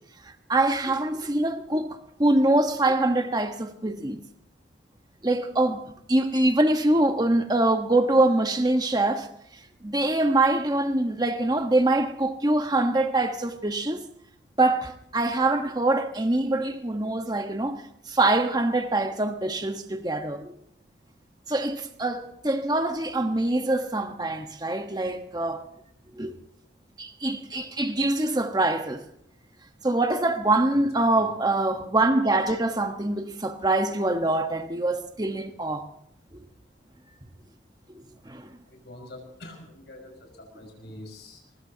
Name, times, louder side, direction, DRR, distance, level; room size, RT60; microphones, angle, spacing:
voice 1, 0.2-4.2 5.2-9.3 9.8-14.0 14.6-20.5 21.5-25.6 26.1-26.4 27.0-29.0 29.8-35.9 36.3-36.4 37.9-38.5, right 2 dB, 20° right, 1.2 m, -24 dB
voice 2, 31.0-31.3 38.6-41.6, left 1 dB, 65° left, 5.3 m, -45 dB
23.5 x 20.5 x 2.9 m
head